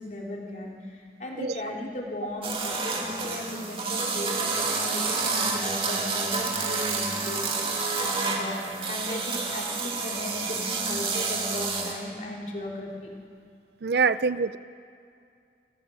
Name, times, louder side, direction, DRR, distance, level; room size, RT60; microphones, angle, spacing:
voice 1, 0.0-13.1, left 1 dB, 45° left, -2 dB, 3.4 m, -36 dB
sound 1, 2.4-12.0, right 4 dB, 30° right, 2.3 m, -29 dB
voice 2, 13.8-14.6, right 5 dB, 65° right, 15 dB, 0.5 m, -24 dB
28.5 x 14.0 x 7.0 m, 2.4 s
head